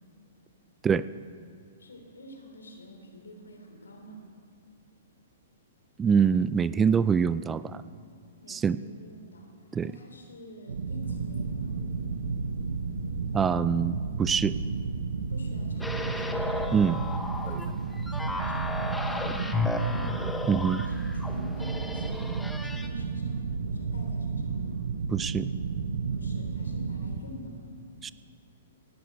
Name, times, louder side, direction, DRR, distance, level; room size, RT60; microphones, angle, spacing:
voice 1, 1.8-4.2 8.4-9.5 9.8-11.7 15.3-16.5 18.1-24.8 26.1-27.7, equal, 75° left, 2 dB, 2.9 m, -48 dB
voice 2, 6.0-7.8 8.5-8.8 9.7-9.9 13.3-14.6 16.7-17.0 20.5-20.8 25.1-25.5 28.0-28.1, right 6 dB, 15° right, 16 dB, 0.3 m, -24 dB
sound 1, 10.7-27.2, right 5 dB, 70° right, 1.0 m, -32 dB
sound 2, 11.0-19.8, left 3 dB, 60° left, 1.4 m, -46 dB
sound 3, 15.8-22.9, left 2 dB, 5° left, 0.8 m, -34 dB
18.0 x 12.0 x 4.6 m, 2.2 s
figure-of-eight pair, 115°, 0 cm